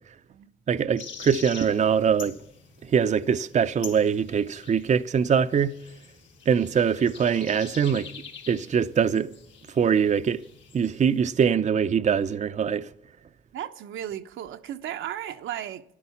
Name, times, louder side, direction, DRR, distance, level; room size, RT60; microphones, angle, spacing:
voice 1, 0.7-2.3 2.8-5.8 6.5-8.1 8.5-9.3 9.8-10.4 10.7-12.9, right 7 dB, 35° right, 0.6 m, -23 dB
sound 1, 1.0-11.2, left 6 dB, 70° left, 3.4 m, -46 dB
voice 2, 13.5-15.8, right 11 dB, 80° right, 0.9 m, -35 dB
13.0 x 11.0 x 7.0 m
cardioid pair, 90°, 20 cm